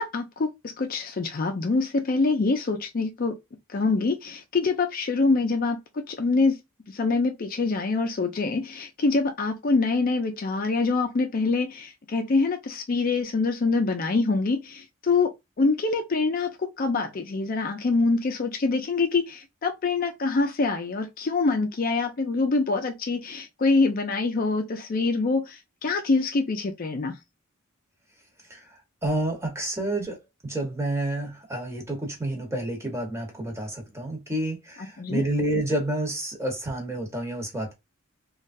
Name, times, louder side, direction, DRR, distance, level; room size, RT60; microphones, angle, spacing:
voice 1, 0.0-3.4 3.7-6.6 6.9-15.3 15.6-27.2 35.0-35.2, left 3 dB, 40° left, 0.4 m, -25 dB
voice 2, 28.5-37.7, right 1 dB, 15° right, 1.0 m, -29 dB
3.2 x 2.3 x 2.5 m
head